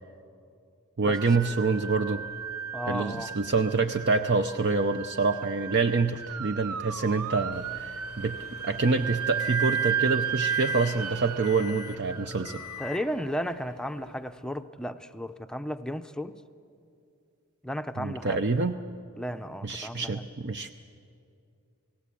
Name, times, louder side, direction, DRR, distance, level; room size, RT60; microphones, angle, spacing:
voice 1, 1.0-2.2 2.9-8.4 8.6-12.6 18.0-18.8 19.6-20.7, right 4 dB, 50° right, 8 dB, 0.7 m, -26 dB
sound 1, 1.0-14.1, right 8 dB, 85° right, 0.8 m, -34 dB
voice 2, 2.7-3.3 12.8-16.4 17.6-18.4 19.1-20.1, equal, 5° left, 9 dB, 0.6 m, -34 dB
Microwave oven, 7.5-10.1 10.4-11.0 11.4-12.0 12.4-13.1, left 12 dB, 85° left, 0.7 m, -42 dB
29.5 x 18.0 x 8.6 m, 2.5 s
head